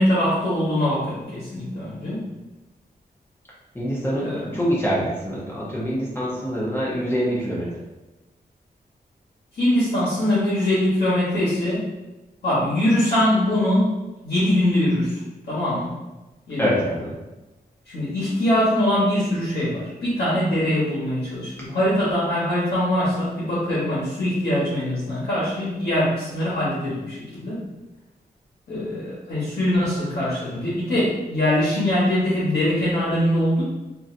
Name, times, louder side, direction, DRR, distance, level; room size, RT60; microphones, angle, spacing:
voice 1, 0.0-2.2 4.2-4.5 9.5-11.9 12.4-13.9 14.2-15.2 15.5-15.9 16.5-16.7 17.9-27.6 28.7-33.6, left 1 dB, 90° left, -9 dB, 1.0 m, -22 dB
voice 2, 3.7-7.8 16.6-17.2, equal, 15° left, -7 dB, 0.7 m, -25 dB
2.9 x 2.5 x 2.5 m, 1.1 s
wide cardioid pair, 135°, 17 cm